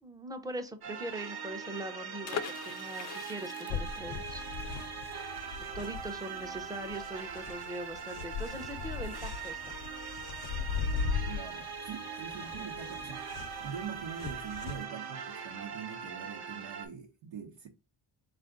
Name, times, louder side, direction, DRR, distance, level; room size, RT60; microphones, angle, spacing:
voice 1, 0.0-4.4 5.7-9.8, right 1 dB, 10° right, 0.6 m, -41 dB
sound 1, 0.8-16.9, right 6 dB, 50° right, 0.9 m, -41 dB
sound 2, 2.2-7.9 8.2-8.3 8.5-8.8, left 8 dB, 35° left, 0.4 m, -43 dB
sound 3, 3.7-14.8, left 6 dB, 80° left, 0.7 m, -39 dB
voice 2, 5.6-6.0 11.3-17.7, right 7 dB, 80° right, 0.8 m, -44 dB
3.7 x 2.5 x 3.6 m
cardioid pair, 70°, 47 cm